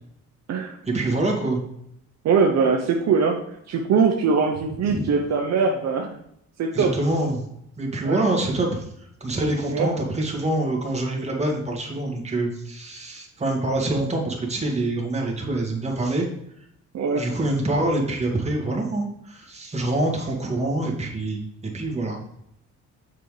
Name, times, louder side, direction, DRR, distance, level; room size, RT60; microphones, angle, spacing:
voice 1, 0.9-1.6 4.8-5.1 6.7-7.4 7.8-16.3 17.2-22.2, right 2 dB, 20° right, -1 dB, 1.8 m, -25 dB
voice 2, 2.2-3.4 3.7-6.2 6.6-6.9 8.0-8.2 9.7-9.9 16.9-17.3, right 5 dB, 60° right, 2 dB, 0.8 m, -21 dB
6.7 x 5.4 x 3.2 m, 0.75 s
cardioid pair, 90°, 30 cm